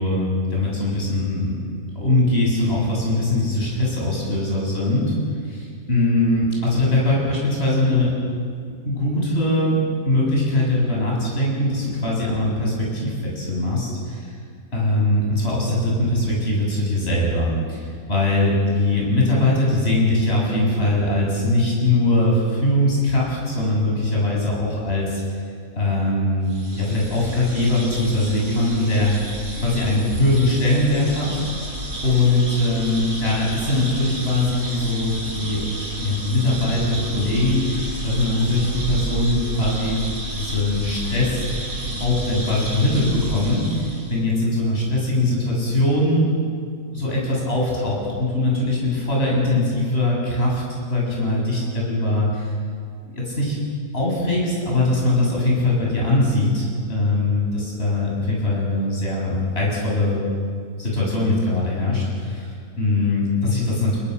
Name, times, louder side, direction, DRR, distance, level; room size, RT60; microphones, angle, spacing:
voice 1, 0.0-1.5 1.9-5.2 5.4-8.1 8.8-9.8 10.0-14.3 14.7-25.2 25.7-29.1 29.6-31.4 32.0-35.6 36.0-40.0 40.3-41.4 42.0-46.3 46.9-52.5 53.0-53.6 53.9-60.2 60.8-64.0, left 2 dB, 40° left, -4 dB, 8.2 m, -21 dB
sound 1, 26.4-44.2, right 1 dB, 60° right, 6.0 m, -31 dB
29.5 x 21.0 x 6.7 m, 2.1 s
omnidirectional pair, 1.7 m